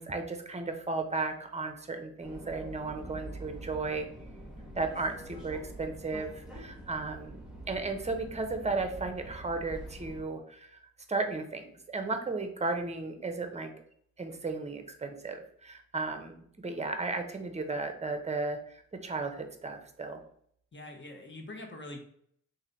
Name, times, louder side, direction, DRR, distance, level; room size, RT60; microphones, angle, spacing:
voice 1, 0.0-4.1 4.7-7.4 7.7-10.8 11.1-13.7 14.2-20.2, right 3 dB, 20° right, 6 dB, 0.8 m, -35 dB
Subway metro underground, 2.2-10.2, right 1 dB, ahead, 1.1 m, -45 dB
voice 2, 20.7-22.0, left 1 dB, 35° left, 3 dB, 1.1 m, -44 dB
3.0 x 2.7 x 3.9 m, 0.63 s
supercardioid pair, 45°, 35 cm